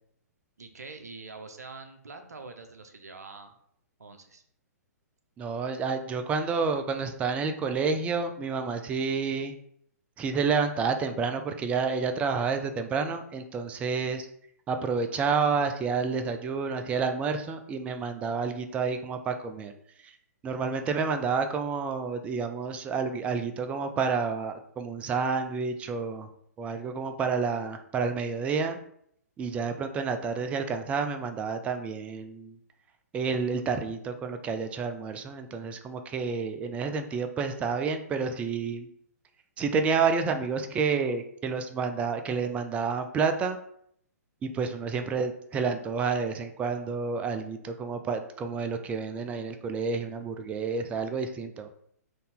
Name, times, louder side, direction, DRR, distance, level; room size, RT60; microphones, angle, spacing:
voice 1, 0.6-3.6 4.0-4.4, right 4 dB, 75° right, 6 dB, 0.6 m, -45 dB
voice 2, 5.4-9.6 10.2-14.3 14.7-19.7 20.0-20.1 20.4-26.3 26.6-28.8 29.4-32.6 33.1-38.9 39.6-43.6 44.4-51.7, right 5 dB, 15° right, 7 dB, 0.3 m, -29 dB
3.9 x 2.6 x 3.5 m, 0.68 s
figure-of-eight pair, 120°, 9 cm